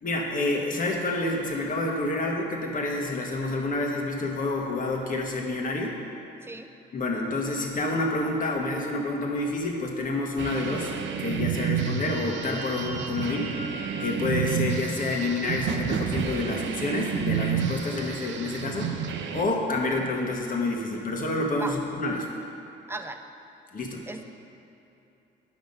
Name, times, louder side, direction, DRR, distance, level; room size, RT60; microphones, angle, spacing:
voice 1, 0.0-6.0 6.9-10.9 11.2-13.6 14.0-19.0 19.3-22.3 23.7-24.0, left 2 dB, 45° left, 0 dB, 1.5 m, -28 dB
sound 1, 10.4-19.4, right 7 dB, 70° right, 0.7 m, -30 dB
sound 2, 11.2-15.7, right 1 dB, 35° right, 0.9 m, -43 dB
voice 2, 22.9-23.2 24.1-24.2, right 2 dB, 10° right, 6 dB, 0.6 m, -35 dB
11.0 x 6.0 x 5.5 m, 2.8 s
cardioid pair, 90°, 20 cm